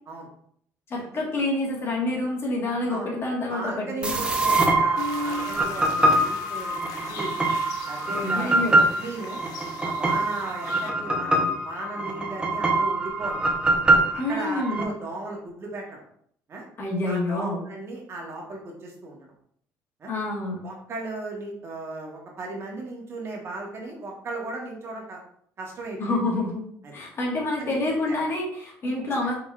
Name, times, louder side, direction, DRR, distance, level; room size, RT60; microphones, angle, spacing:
voice 1, 0.9-4.1 8.1-8.8 14.2-14.9 16.8-17.6 20.1-20.7 26.0-26.7 26.9-29.3, left 2 dB, 40° left, -2 dB, 1.6 m, -27 dB
voice 2, 3.5-7.4 7.9-9.4 9.8-13.4 14.1-16.0 16.5-16.6 17.0-19.3 20.0-20.1 20.6-25.2 25.6-26.0 26.8-27.0 27.6-28.2 28.8-29.0, right 2 dB, 45° right, -1 dB, 1.3 m, -36 dB
sound 1, 4.0-14.8, right 2 dB, 15° right, 0.8 m, -24 dB
sound 2, 5.0-10.9, left 4 dB, 75° left, 0.6 m, -38 dB
4.7 x 3.8 x 2.4 m, 0.65 s
supercardioid pair, 90°, 6 cm